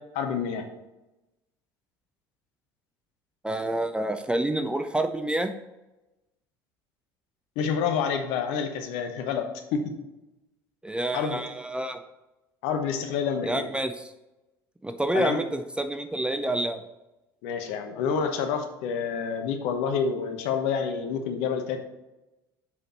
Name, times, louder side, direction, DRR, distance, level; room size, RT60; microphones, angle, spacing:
voice 1, 0.1-0.6 7.6-9.9 11.1-11.4 12.6-13.7 15.1-15.4 17.4-21.8, left 6 dB, 55° left, 6 dB, 1.0 m, -28 dB
voice 2, 3.4-5.5 10.8-12.0 13.4-14.1 14.8-16.8, right 1 dB, 10° right, 7 dB, 0.5 m, -28 dB
7.1 x 5.1 x 4.2 m, 1.0 s
figure-of-eight pair, 65°, 13 cm